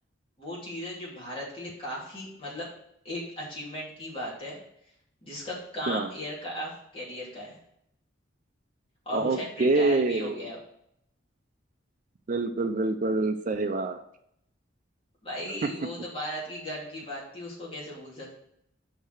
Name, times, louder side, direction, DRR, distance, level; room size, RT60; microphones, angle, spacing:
voice 1, 0.4-2.7 3.0-4.6 5.2-7.6 9.1-10.6 15.2-18.4, equal, 30° left, -5 dB, 2.6 m, -37 dB
voice 2, 9.1-10.4 12.3-14.0 15.6-15.7, right 3 dB, 40° right, 8 dB, 0.4 m, -26 dB
5.6 x 4.6 x 6.4 m, 0.74 s
head